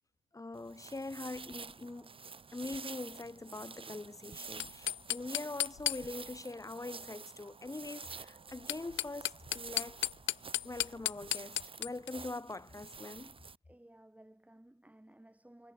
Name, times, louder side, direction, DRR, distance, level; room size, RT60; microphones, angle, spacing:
voice 1, 0.3-2.1 2.5-10.0 10.6-13.4, left 2 dB, 15° left, 2.0 m, -43 dB
sound 1, 0.5-13.6, right 5 dB, 25° right, 1.0 m, -49 dB
sound 2, 4.5-6.4 8.5-12.1, left 14 dB, 75° left, 0.7 m, -35 dB
voice 2, 13.7-15.7, right 1 dB, 5° right, 7.9 m, -58 dB
cardioid pair, 90°, 20 cm